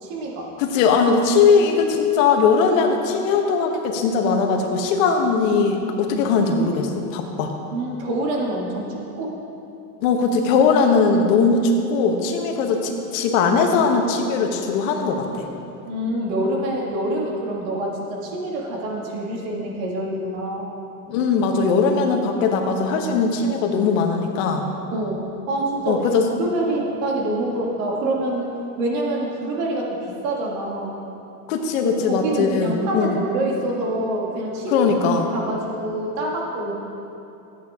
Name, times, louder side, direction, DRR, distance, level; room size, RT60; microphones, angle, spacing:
voice 1, 0.0-0.5 6.1-6.2 7.7-9.4 15.8-20.7 24.9-26.0 26.4-28.5 28.8-30.0 30.2-31.1 31.8-34.9 35.3-36.7, right 1 dB, 55° right, -1 dB, 2.3 m, -26 dB
voice 2, 0.6-7.5 10.0-15.5 21.1-24.7 25.8-26.3 31.5-33.2 34.7-35.3, left 5 dB, 55° left, 3 dB, 1.3 m, -20 dB
14.0 x 8.8 x 3.7 m, 2.8 s
supercardioid pair, 150°, 46 cm